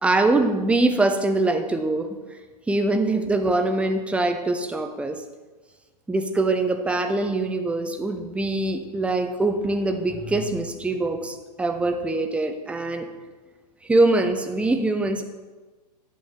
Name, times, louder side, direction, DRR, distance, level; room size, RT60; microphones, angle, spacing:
voice 1, 0.0-2.4 2.7-5.2 6.1-13.1 13.8-15.2, right 2 dB, 5° right, 6 dB, 0.6 m, -23 dB
10.5 x 6.2 x 3.7 m, 1.3 s
figure-of-eight pair, 110°, 21 cm